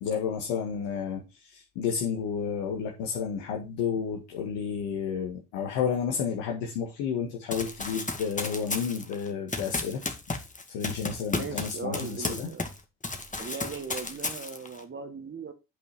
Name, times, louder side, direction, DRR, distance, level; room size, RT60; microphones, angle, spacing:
voice 1, 0.0-10.0 10.7-12.5, left 7 dB, 80° left, 0 dB, 1.8 m, -31 dB
Run, 7.5-12.8 13.0-14.8, left 3 dB, 20° left, 1.9 m, -34 dB
voice 2, 11.3-12.7 13.4-15.5, right 5 dB, 35° right, 7 dB, 1.7 m, -38 dB
8.7 x 5.5 x 4.5 m, 0.26 s
hypercardioid pair, 50°, 34 cm